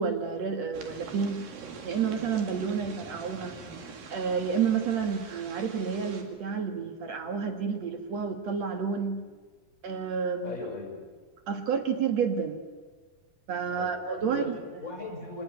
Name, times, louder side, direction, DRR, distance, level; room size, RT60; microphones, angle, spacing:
voice 1, 0.0-1.4 1.8-3.5 4.1-9.3 9.8-10.5 11.5-12.6 13.5-14.6, right 6 dB, 55° right, 7 dB, 2.4 m, -30 dB
sound 1, 0.7-6.2, right 5 dB, 70° right, 4.0 m, -44 dB
voice 2, 10.4-11.0 13.6-15.4, left 3 dB, 20° left, 2 dB, 5.9 m, -39 dB
25.5 x 19.5 x 9.6 m, 1.4 s
omnidirectional pair, 4.3 m